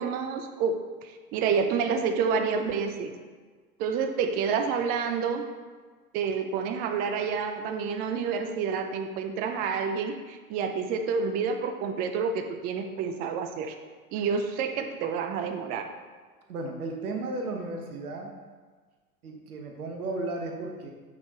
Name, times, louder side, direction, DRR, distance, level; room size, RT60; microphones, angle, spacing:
voice 1, 0.0-3.1 3.8-5.4 6.1-13.7 14.1-15.9, right 6 dB, 20° right, 6 dB, 0.4 m, -29 dB
voice 2, 16.5-18.3 19.2-20.9, right 2 dB, 75° right, 2 dB, 1.2 m, -34 dB
6.4 x 6.0 x 2.9 m, 1.5 s
figure-of-eight pair, 90°, 45 cm